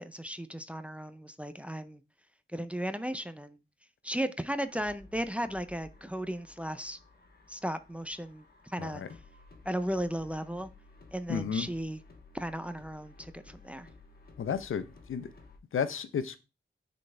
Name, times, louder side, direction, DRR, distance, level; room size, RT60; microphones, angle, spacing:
voice 1, 0.0-2.0 2.5-3.6 4.0-7.0 7.5-9.0 9.7-10.7 11.1-12.0 12.3-13.9, equal, 5° right, 0.4 m, -35 dB
sound 1, 4.5-15.6, left 3 dB, 50° left, 1.3 m, -56 dB
voice 2, 8.8-9.1 11.3-11.7 14.4-15.3 15.7-16.4, left 7 dB, 90° left, 0.7 m, -32 dB
9.6 x 4.2 x 3.3 m
wide cardioid pair, 175°, 21 cm